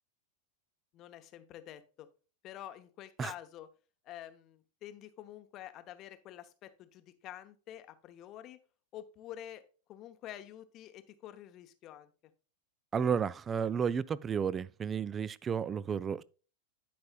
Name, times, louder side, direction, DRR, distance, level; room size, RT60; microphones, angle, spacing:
voice 1, 0.9-2.1 2.4-3.7 4.0-8.6 8.9-9.6 9.9-12.1, left 12 dB, 35° left, 0.8 m, -48 dB
voice 2, 12.9-16.2, right 7 dB, 20° right, 0.4 m, -32 dB
11.5 x 5.3 x 2.3 m
figure-of-eight pair, 90°, 0 cm